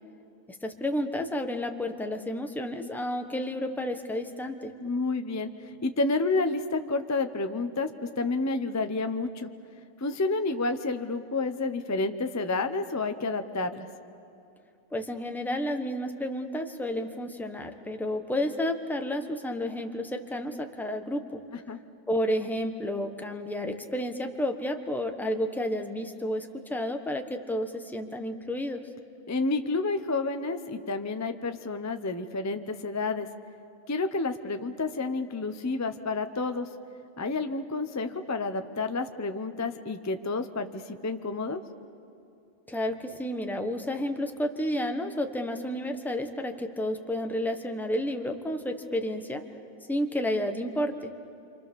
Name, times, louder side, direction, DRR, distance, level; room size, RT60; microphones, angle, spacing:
voice 1, 0.5-4.7 14.9-21.4 22.1-28.8 42.7-49.4 49.9-51.1, left 1 dB, ahead, 4 dB, 1.0 m, -31 dB
voice 2, 4.8-9.5 10.0-13.9 21.7-21.8 29.3-33.3 33.9-36.7 37.2-41.6, left 3 dB, 25° left, 8 dB, 0.4 m, -30 dB
28.0 x 26.0 x 7.0 m, 2.7 s
omnidirectional pair, 1.8 m